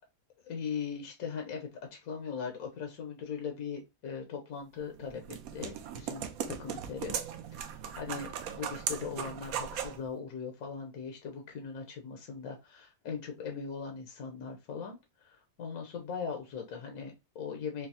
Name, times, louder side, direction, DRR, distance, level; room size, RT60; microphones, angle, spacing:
voice 1, 0.4-7.2 7.6-17.9, left 6 dB, 85° left, 2 dB, 1.5 m, -40 dB
sound 1, 4.8-10.0, right 8 dB, 90° right, 1.1 m, -38 dB
5.7 x 2.0 x 2.8 m, 0.24 s
omnidirectional pair, 1.5 m